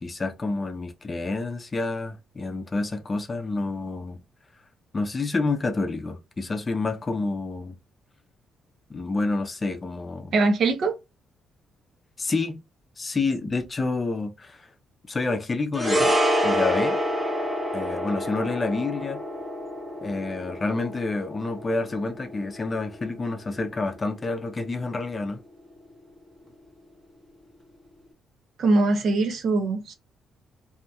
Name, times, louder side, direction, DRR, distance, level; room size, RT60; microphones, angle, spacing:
voice 1, 0.0-4.2 4.9-7.8 8.9-10.3 12.2-12.6 13.0-14.7 15.1-16.2 16.4-17.0 17.7-19.2 20.0-25.4, left 3 dB, 30° left, 0.5 m, -28 dB
voice 2, 10.3-10.9 28.6-29.9, right 3 dB, 65° right, 0.7 m, -22 dB
sound 1, 15.7-24.2 24.5-24.7, equal, 10° right, 1.0 m, -28 dB
2.7 x 2.7 x 2.2 m
cardioid pair, 90°, 0 cm